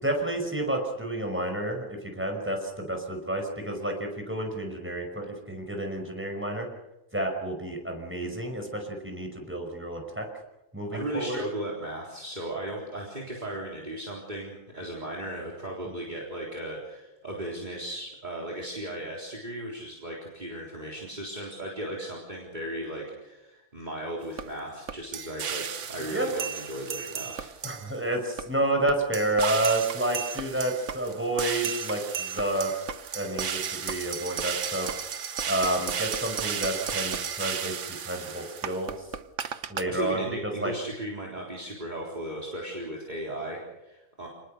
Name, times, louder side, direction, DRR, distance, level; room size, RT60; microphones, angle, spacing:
voice 1, 0.0-6.7 7.1-10.3 10.7-11.4 15.8-15.9 26.1-26.3 27.6-32.8 33.1-34.9 35.5-37.7 38.0-39.0 39.7-40.7, right 1 dB, 5° right, 3 dB, 5.5 m, -30 dB
voice 2, 10.9-27.5 39.9-44.3, right 1 dB, 30° right, -3 dB, 4.1 m, -36 dB
sound 1, 24.4-24.5 24.9-28.0 28.4-28.5 28.9-39.8, right 7 dB, 55° right, 1.3 m, -34 dB
29.0 x 20.0 x 6.7 m, 0.95 s
omnidirectional pair, 1.6 m